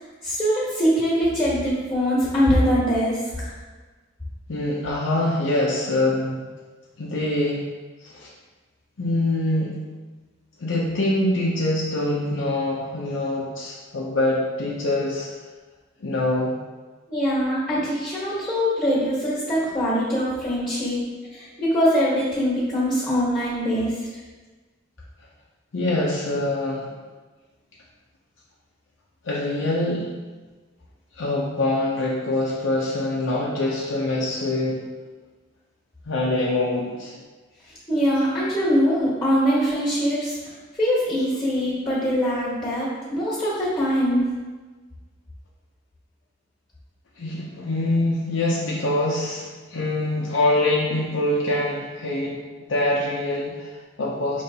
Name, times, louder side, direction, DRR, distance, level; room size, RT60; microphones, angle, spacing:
voice 1, 0.2-3.5 17.1-21.0 21.3-24.1 37.9-40.4 40.8-44.2, equal, 15° left, -7 dB, 1.3 m, -22 dB
voice 2, 4.5-6.4 7.0-7.6 8.0-8.3 9.0-9.8 10.6-15.3 16.0-16.6 25.7-26.9 29.2-30.1 31.1-34.8 36.1-37.2 47.2-52.4 52.7-54.4, left 1 dB, 75° left, -4 dB, 0.6 m, -24 dB
5.2 x 3.1 x 2.8 m, 1.3 s
head